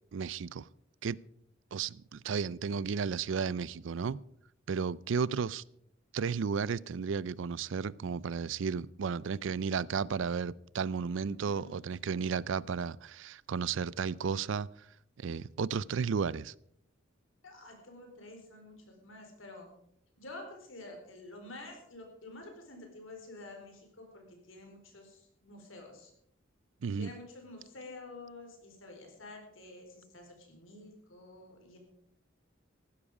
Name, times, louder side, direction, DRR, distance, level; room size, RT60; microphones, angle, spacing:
voice 1, 0.1-0.7 1.0-1.2 1.7-4.2 4.7-5.6 6.1-14.7 15.2-16.5 26.8-27.1, right 6 dB, 70° right, 0.4 m, -33 dB
voice 2, 11.2-12.1 17.4-19.7 20.2-26.1 27.0-31.8, left 2 dB, 90° left, 4.2 m, -49 dB
15.0 x 12.5 x 4.9 m
head